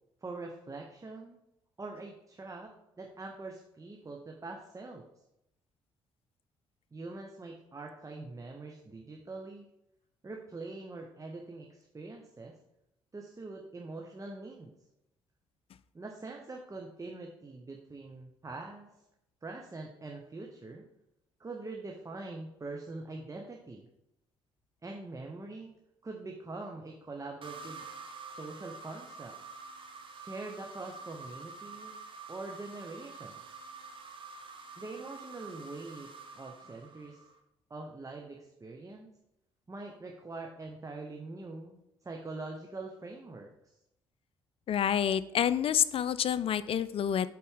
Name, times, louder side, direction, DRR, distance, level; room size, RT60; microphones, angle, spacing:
voice 1, 0.2-1.4 1.8-5.0 6.9-9.7 10.2-12.6 13.1-14.7 15.9-18.9 19.4-20.8 21.4-23.8 24.8-25.7 26.0-27.8 28.3-29.4 30.1-31.9 32.3-33.6 34.8-37.2 37.7-39.1 39.7-43.7, right 3 dB, 25° right, 1 dB, 1.0 m, -44 dB
sound 1, 27.4-37.4, right 4 dB, 45° right, 1.2 m, -47 dB
voice 2, 44.7-47.3, left 9 dB, 50° left, 16 dB, 0.4 m, -28 dB
8.2 x 4.2 x 3.8 m, 0.84 s
hypercardioid pair, 50°, 12 cm